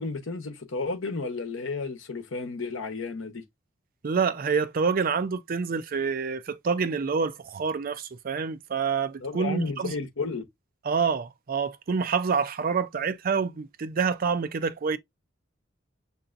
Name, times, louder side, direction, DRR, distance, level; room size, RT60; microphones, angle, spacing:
voice 1, 0.0-3.5 9.2-10.5, left 3 dB, 75° left, 0.9 m, -32 dB
voice 2, 4.0-10.0 10.8-15.0, right 5 dB, 45° right, 0.4 m, -27 dB
6.8 x 2.7 x 2.5 m
head